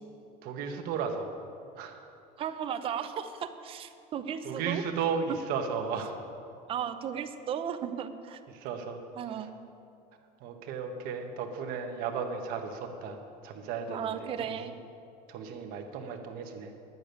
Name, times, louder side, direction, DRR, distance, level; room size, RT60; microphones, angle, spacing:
voice 1, 0.4-1.3 1.7-2.0 4.4-6.2 8.5-9.0 10.4-14.6 15.3-16.7, right 6 dB, 55° right, 4 dB, 1.3 m, -35 dB
voice 2, 2.4-4.8 5.3-5.4 6.7-8.4 9.2-9.6 13.9-14.7, right 8 dB, 30° right, 9 dB, 0.6 m, -35 dB
11.0 x 6.9 x 9.3 m, 2.7 s
cardioid pair, 160°, 19 cm